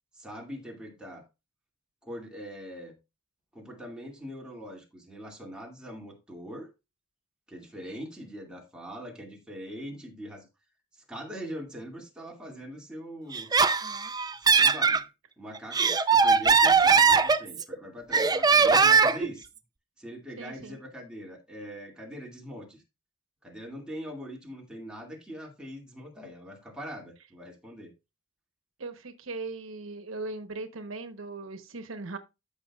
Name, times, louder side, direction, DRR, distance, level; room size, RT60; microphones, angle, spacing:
voice 1, 0.1-1.3 2.0-3.0 3.5-6.7 7.5-10.5 10.9-13.5 14.4-15.1 15.4-19.5 20.0-22.8 23.4-27.9, equal, 5° right, 2.2 m, -42 dB
Laughter, 13.3-15.0 15.5-17.7 18.1-19.3, right 5 dB, 20° right, 0.5 m, -21 dB
voice 2, 20.4-20.8 28.8-32.2, right 3 dB, 80° right, 1.0 m, -39 dB
13.5 x 5.6 x 2.3 m
head